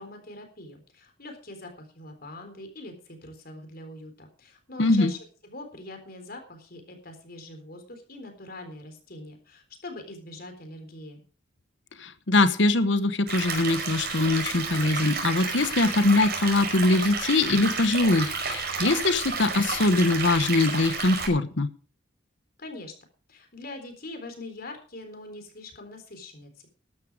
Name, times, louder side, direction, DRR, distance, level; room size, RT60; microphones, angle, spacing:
voice 1, 0.0-5.2 5.4-11.2 22.6-22.9 23.3-26.7, left 2 dB, 50° left, 6 dB, 3.9 m, -43 dB
voice 2, 4.8-5.1 12.0-21.7, left 2 dB, 70° left, 12 dB, 1.2 m, -22 dB
sound 1, 13.3-21.3, right 4 dB, 55° right, 5.3 m, -31 dB
13.5 x 11.5 x 4.9 m, 0.38 s
head